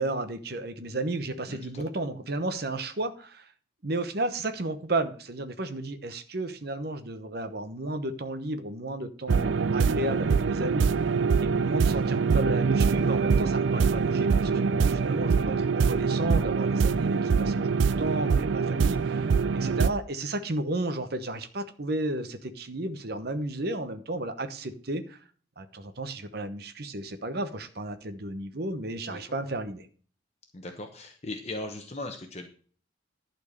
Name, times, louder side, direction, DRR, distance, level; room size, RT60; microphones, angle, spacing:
voice 1, 0.0-3.5 3.8-10.9 11.4-25.2 25.6-29.9, right 2 dB, 55° right, 10 dB, 1.0 m, -33 dB
voice 2, 1.5-1.8 29.1-29.2 30.5-32.5, left 2 dB, 35° left, 4 dB, 1.0 m, -38 dB
sound 1, 9.3-19.9, right 5 dB, 75° right, 0.4 m, -24 dB
11.5 x 4.5 x 6.6 m, 0.43 s
head